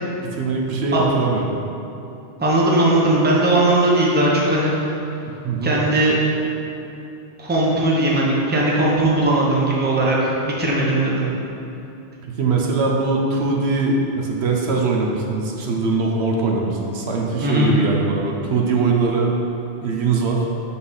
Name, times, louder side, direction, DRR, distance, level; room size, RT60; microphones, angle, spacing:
voice 1, 0.2-1.4 5.4-5.7 12.2-19.3 19.8-20.5, right 3 dB, 75° right, 0 dB, 1.0 m, -21 dB
voice 2, 2.4-4.7 5.6-6.2 7.4-11.3 17.4-17.7, right 1 dB, 10° right, -5 dB, 0.8 m, -18 dB
5.7 x 5.7 x 4.0 m, 2.8 s
omnidirectional pair, 1.1 m